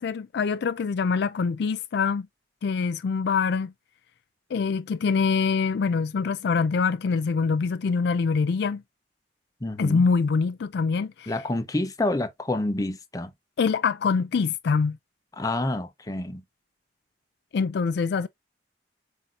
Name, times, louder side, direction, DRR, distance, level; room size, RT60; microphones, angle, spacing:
voice 1, 0.0-2.3 2.6-3.7 4.5-8.8 9.8-11.3 13.6-15.0 17.5-18.3, left 5 dB, 65° left, 0.4 m, -24 dB
voice 2, 9.6-10.1 11.3-13.3 15.4-16.4, left 2 dB, 20° left, 0.6 m, -28 dB
7.5 x 2.7 x 2.4 m
head